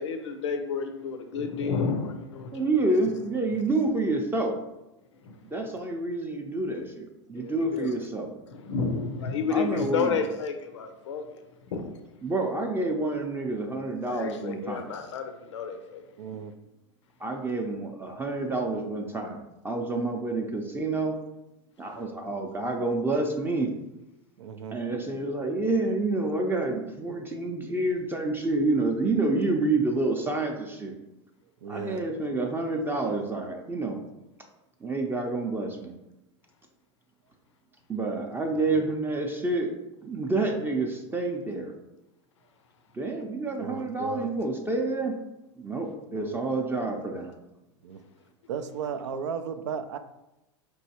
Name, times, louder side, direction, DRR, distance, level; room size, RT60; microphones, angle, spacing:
voice 1, 0.0-2.7 5.2-5.4 7.3-8.0 8.5-11.4 11.7-12.0 14.0-16.0, left 5 dB, 85° left, 6 dB, 0.5 m, -31 dB
voice 2, 2.5-4.6 5.4-8.3 9.5-10.2 12.2-14.9 17.2-21.1 21.8-23.7 24.7-31.0 31.7-34.0 34.8-35.9 37.9-39.7 40.0-41.7 42.9-45.1 45.6-47.3, right 2 dB, 15° right, 2 dB, 0.5 m, -28 dB
voice 3, 16.2-16.5 24.4-24.8 31.6-32.1 38.5-38.9 43.6-44.5 46.1-46.4 46.8-46.9 47.8-48.0 48.5-50.0, right 6 dB, 85° right, 10 dB, 0.4 m, -36 dB
4.5 x 3.0 x 2.8 m, 0.94 s
hypercardioid pair, 105°, 15 cm